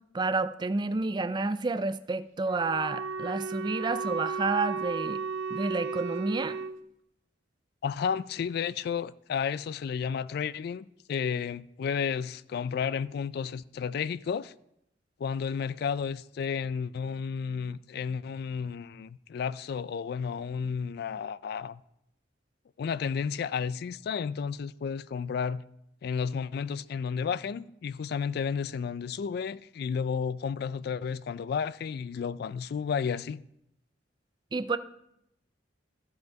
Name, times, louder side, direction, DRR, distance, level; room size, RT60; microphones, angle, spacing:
voice 1, 0.1-5.2 5.5-6.6 34.5-34.8, right 3 dB, 25° right, 0.4 m, -30 dB
Wind instrument woodwind instrument, 2.4-6.8, right 5 dB, 80° right, 0.6 m, -34 dB
voice 2, 7.8-14.5 15.2-21.8 22.8-25.6 26.0-33.4, left 6 dB, 55° left, 0.3 m, -32 dB
14.5 x 5.3 x 4.7 m
head